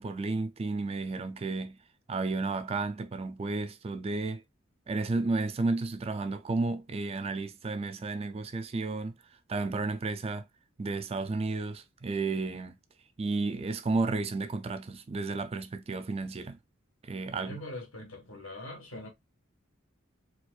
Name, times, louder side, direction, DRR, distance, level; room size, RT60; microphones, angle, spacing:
voice 1, 0.0-1.8 2.1-4.4 4.9-9.1 9.5-10.4 10.8-12.8 13.2-16.6 17.0-17.6, right 3 dB, 30° right, 0.4 m, -32 dB
voice 2, 17.4-19.1, left 1 dB, 70° left, 1.5 m, -42 dB
4.4 x 2.4 x 2.3 m
head